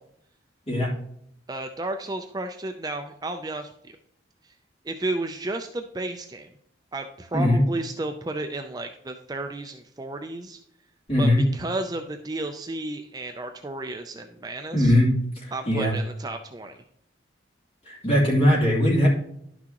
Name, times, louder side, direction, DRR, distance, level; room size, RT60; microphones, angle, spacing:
voice 1, 1.5-4.0 4.4-4.5 4.8-6.5 6.9-10.6 11.2-15.0 15.5-16.8, right 2 dB, 20° right, 6 dB, 0.4 m, -33 dB
voice 2, 7.3-7.6 11.1-11.4 14.7-15.1 15.4-15.9 17.9-19.1, left 1 dB, 30° left, -5 dB, 3.1 m, -20 dB
11.0 x 6.1 x 2.9 m, 0.73 s
head